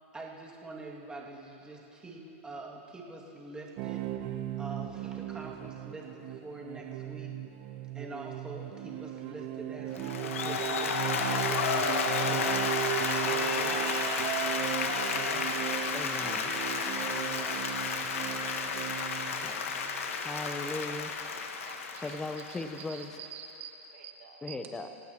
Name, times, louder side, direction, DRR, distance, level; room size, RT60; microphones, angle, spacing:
voice 1, 0.1-4.1 4.6-7.4 7.9-11.1 11.4-12.7 13.1-14.0 14.9-15.5 16.8-18.9 19.4-19.8, right 2 dB, 10° right, -3 dB, 2.3 m, -45 dB
sound 1, 3.8-20.0 21.6-21.7, right 12 dB, 50° right, 0.9 m, -37 dB
Applause, 10.0-23.1, left 5 dB, 90° left, 1.4 m, -32 dB
voice 2, 15.9-16.5 19.4-19.6 20.2-21.1 22.0-23.2 24.4-24.9, left 2 dB, 10° left, 6 dB, 0.8 m, -38 dB
voice 3, 21.7-24.6, right 8 dB, 70° right, 2 dB, 1.9 m, -47 dB
28.0 x 16.0 x 3.0 m, 2.9 s
supercardioid pair, 140°, 7 cm